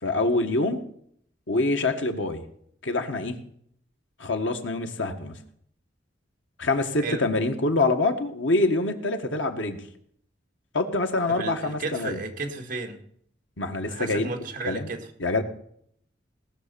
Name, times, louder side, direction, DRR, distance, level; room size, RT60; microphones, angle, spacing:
voice 1, 0.0-0.8 1.5-2.4 2.8-3.4 4.2-5.4 6.6-9.8 10.7-12.2 13.6-14.3 14.6-14.9 15.2-15.4, left 2 dB, 90° left, 5 dB, 1.6 m, -25 dB
voice 2, 11.3-13.0 13.9-15.1, right 3 dB, 45° right, 4 dB, 2.0 m, -33 dB
18.0 x 6.5 x 6.9 m, 0.65 s
head